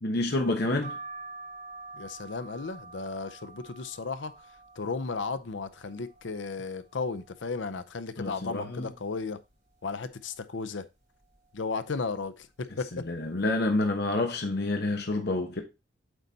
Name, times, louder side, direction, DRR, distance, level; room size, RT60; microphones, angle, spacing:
voice 1, 0.0-1.0 8.2-8.9 12.9-15.6, left 2 dB, 60° left, 1.1 m, -28 dB
sound 1, 0.8-6.5 6.9-7.7 8.1-8.2 8.4-9.5 10.0-10.4 11.1-11.5 12.2-12.5 12.7-12.9, right 3 dB, 55° right, 4.3 m, -47 dB
voice 2, 1.9-4.3 4.8-9.4 9.8-10.9 11.5-13.1, left 4 dB, 85° left, 0.7 m, -34 dB
8.0 x 4.1 x 4.0 m
head